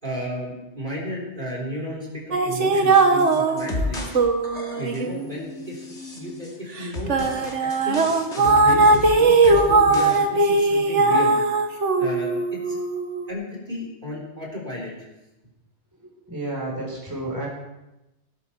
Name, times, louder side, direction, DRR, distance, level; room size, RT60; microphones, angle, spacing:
voice 1, 0.0-4.0 4.7-5.9 6.1-8.0 8.4-11.3 12.0-12.8 13.3-15.1, equal, 40° right, -3 dB, 4.3 m, -33 dB
sound 1, 2.3-6.3 6.8-13.3, right 3 dB, 80° right, 1.8 m, -20 dB
sound 2, 2.9-4.2 4.4-5.1 5.7-6.6 6.9-10.2 10.4-10.5, left 2 dB, 70° left, 2.8 m, -33 dB
voice 2, 16.0-17.5, right 1 dB, 15° right, -3 dB, 3.9 m, -31 dB
19.0 x 12.5 x 4.5 m, 0.99 s
omnidirectional pair, 1.2 m